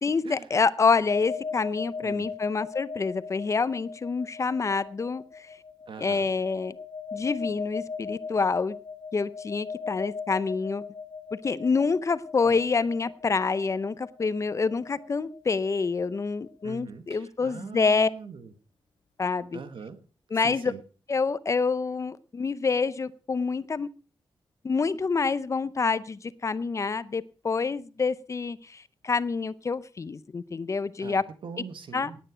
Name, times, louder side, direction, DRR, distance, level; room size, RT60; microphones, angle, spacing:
voice 1, 0.0-5.5 6.0-6.8 7.1-8.8 9.1-10.8 11.3-18.1 19.2-19.6 20.3-20.7 21.1-23.9 24.6-31.2 31.9-32.1, left 4 dB, 35° left, 17 dB, 0.6 m, -27 dB
sound 1, 1.1-16.7, left 5 dB, 55° left, 4.6 m, -39 dB
voice 2, 5.9-6.3 12.5-12.6 16.6-18.5 19.5-20.0 20.4-20.8 31.0-32.2, right 6 dB, 65° right, 10 dB, 1.7 m, -42 dB
18.0 x 9.1 x 5.0 m, 0.37 s
wide cardioid pair, 160°, 9 cm